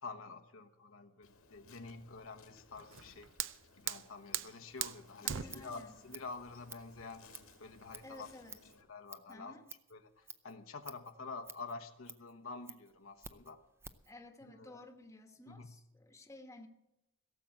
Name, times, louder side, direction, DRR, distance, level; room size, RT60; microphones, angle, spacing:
voice 1, 0.0-3.3 3.7-7.3 7.6-8.3 8.7-9.6 9.9-13.6 14.4-14.8 15.5-15.8, left 4 dB, 70° left, 7 dB, 1.0 m, -48 dB
Insect, 1.2-8.8, left 4 dB, 90° left, 2.2 m, -61 dB
Fire, 2.8-8.7, right 11 dB, 60° right, 0.6 m, -43 dB
voice 2, 5.2-5.9 8.0-8.6 9.3-9.6 14.1-16.7, left 1 dB, 15° left, 5 dB, 1.2 m, -54 dB
Scissors, 5.2-14.1, right 4 dB, 10° right, 0.6 m, -54 dB
17.0 x 7.4 x 7.9 m, 0.88 s
head